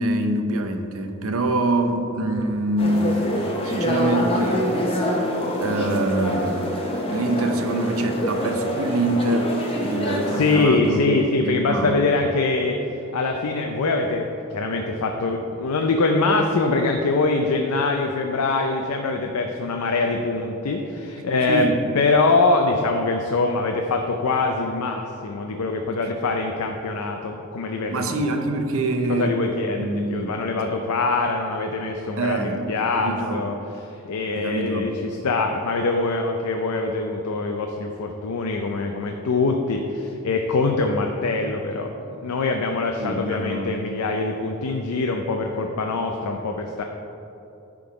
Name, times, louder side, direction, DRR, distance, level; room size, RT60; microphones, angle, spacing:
voice 1, 0.0-3.2 3.6-4.7 5.6-6.6 7.1-9.5 9.8-11.0 11.4-12.1 21.5-21.8 27.9-29.4 29.8-30.3 32.2-32.7 33.0-33.5 34.3-34.9 43.0-43.7, right 1 dB, 65° right, 6 dB, 0.7 m, -24 dB
sound 1, 2.8-10.6, equal, 25° left, 0.9 m, -26 dB
voice 2, 10.4-12.8 13.1-21.7 21.9-28.1 29.1-33.5 34.1-34.9 35.2-41.9 42.2-46.8, left 3 dB, 80° left, 3 dB, 0.5 m, -23 dB
10.5 x 3.8 x 4.8 m, 2.9 s
head